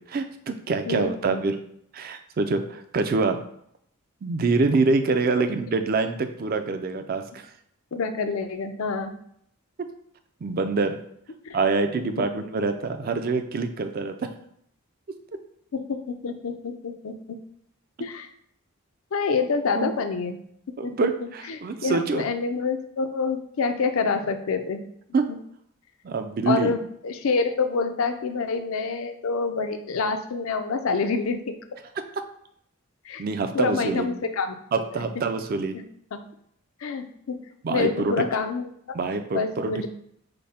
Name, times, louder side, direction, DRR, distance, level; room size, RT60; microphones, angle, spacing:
voice 1, 0.0-1.6 1.9-3.4 4.2-7.5 10.4-11.0 11.5-14.3 19.8-19.9 20.8-22.3 25.1-25.3 26.0-26.7 33.2-34.1 34.7-35.8 37.6-38.3 38.9-39.9, right 3 dB, 45° right, 8 dB, 0.4 m, -25 dB
voice 2, 0.9-1.4 7.9-9.1 11.5-11.6 12.2-12.3 15.7-17.4 18.0-18.3 19.1-20.4 20.8-21.1 21.5-24.8 26.5-31.5 33.1-33.2 33.5-34.6 35.0-35.1 36.1-36.2 36.8-37.4 37.7-39.0 39.3-39.9, left 4 dB, 75° left, 7 dB, 0.5 m, -27 dB
5.2 x 2.1 x 4.2 m, 0.70 s
head